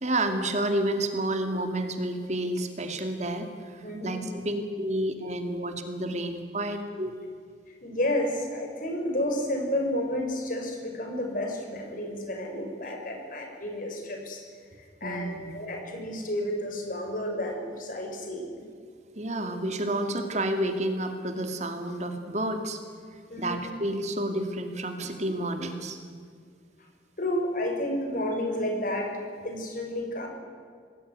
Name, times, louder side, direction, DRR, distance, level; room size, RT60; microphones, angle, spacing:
voice 1, 0.0-7.1 15.0-15.6 19.2-22.8 23.1-26.0, right 1 dB, 40° right, 6 dB, 2.4 m, -30 dB
voice 2, 3.8-4.2 7.8-14.4 15.0-18.6 23.3-23.7 27.2-29.2 29.4-30.3, left 1 dB, 45° left, 2 dB, 5.9 m, -31 dB
27.0 x 20.0 x 9.7 m, 2.1 s
head